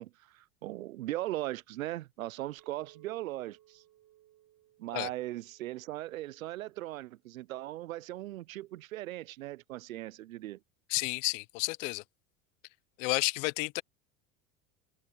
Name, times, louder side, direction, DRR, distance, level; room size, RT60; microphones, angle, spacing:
voice 1, 0.0-3.8 4.8-10.6, right 15 dB, 85° right, 0.8 m, -39 dB
Chink clink, 2.6-7.1, right 14 dB, 50° right, 4.4 m, -63 dB
voice 2, 10.9-12.0 13.0-13.8, left 26 dB, 65° left, 1.1 m, -31 dB
hypercardioid pair, 85°, 40 cm